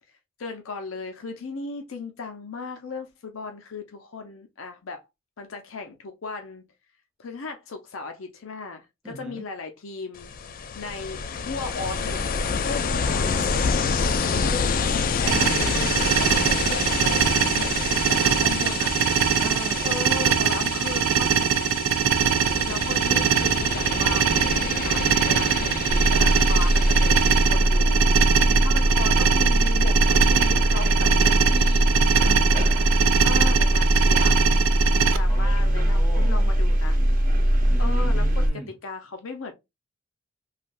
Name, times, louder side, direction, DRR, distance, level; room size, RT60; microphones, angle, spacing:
voice 1, 0.4-5.1 5.4-6.6 7.2-10.3 10.7-12.2 12.6-18.9 19.2-19.5 19.8-21.9 22.2-24.3 24.8-28.3 28.6-31.9 33.2-34.4 35.0-37.0 37.8-38.2 38.8-39.5, left 4 dB, 90° left, 0.6 m, -36 dB
voice 2, 9.0-9.5 13.0-13.9 19.4-20.0 28.2-29.2 32.2-33.2 35.3-36.6 37.7-38.7, right 1 dB, 5° right, 0.7 m, -40 dB
Ocean, 10.1-27.5, left 5 dB, 45° left, 0.3 m, -28 dB
sound 1, 15.3-35.2, right 8 dB, 85° right, 0.4 m, -23 dB
sound 2, 25.9-38.5, equal, 45° right, 0.7 m, -21 dB
3.3 x 2.3 x 2.5 m
head